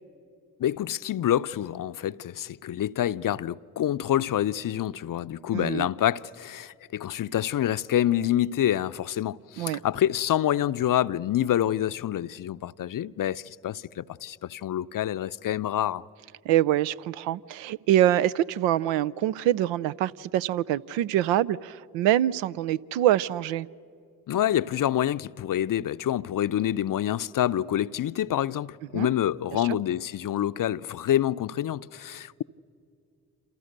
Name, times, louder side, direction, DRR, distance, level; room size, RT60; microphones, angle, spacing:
voice 1, 0.6-16.0 24.3-32.4, left 11 dB, 45° left, 0.6 m, -27 dB
voice 2, 5.5-5.9 9.6-9.8 16.5-23.7 28.9-29.1, right 12 dB, 75° right, 0.6 m, -25 dB
28.0 x 27.0 x 6.6 m
hypercardioid pair, 40°, 45 cm